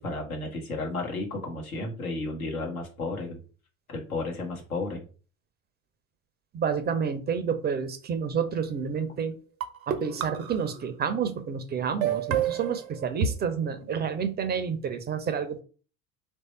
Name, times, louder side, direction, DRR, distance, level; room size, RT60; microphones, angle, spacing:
voice 1, 0.0-3.4 3.9-5.0, left 2 dB, 80° left, 1 dB, 1.0 m, -33 dB
voice 2, 6.5-9.3 9.9-15.6, right 7 dB, 25° right, 10 dB, 0.5 m, -29 dB
sound 1, 8.6-9.0 9.6-11.0 12.0-13.3, right 8 dB, 75° right, 0.6 m, -30 dB
3.2 x 2.6 x 4.2 m, 0.37 s
figure-of-eight pair, 60°, 42 cm